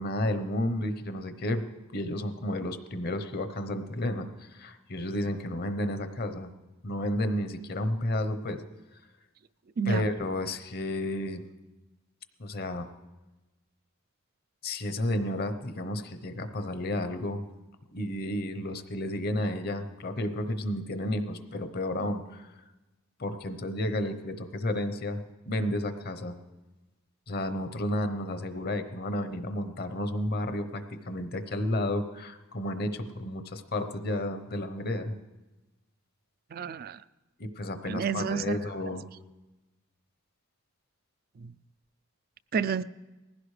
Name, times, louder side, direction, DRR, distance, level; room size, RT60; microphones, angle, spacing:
voice 1, 0.0-1.6 1.9-6.5 6.8-8.6 9.9-11.4 12.4-12.9 14.6-17.4 17.9-22.5 23.2-26.4 27.3-35.2 37.4-39.1, left 1 dB, 50° left, 9 dB, 0.9 m, -32 dB
voice 2, 9.8-10.1 36.5-37.0 37.8-38.6 41.4-41.5 42.5-42.8, right 6 dB, 45° right, 16 dB, 0.4 m, -30 dB
19.5 x 16.0 x 3.3 m, 1.1 s
head